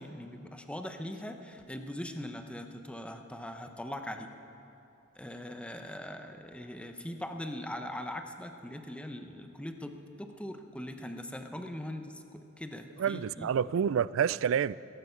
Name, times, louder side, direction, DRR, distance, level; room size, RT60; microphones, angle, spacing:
voice 1, 0.0-4.3 5.1-13.5, left 1 dB, 5° left, 5 dB, 0.8 m, -41 dB
voice 2, 13.0-14.8, right 8 dB, 70° right, 19 dB, 0.3 m, -28 dB
17.0 x 15.0 x 5.7 m, 2.9 s
head